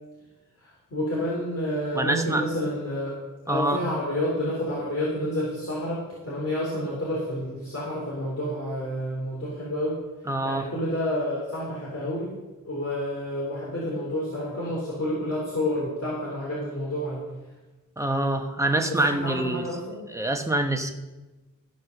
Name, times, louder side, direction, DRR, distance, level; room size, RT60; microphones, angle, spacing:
voice 1, 0.6-3.1 3.4-10.0 10.4-12.3 12.6-17.2 18.7-20.0, left 1 dB, 45° left, -6 dB, 3.9 m, -29 dB
voice 2, 1.9-2.4 3.5-3.8 10.3-10.7 18.0-19.6 20.1-20.9, right 1 dB, 10° right, 4 dB, 1.3 m, -25 dB
14.5 x 5.3 x 6.6 m, 1.1 s
cardioid pair, 60°, 34 cm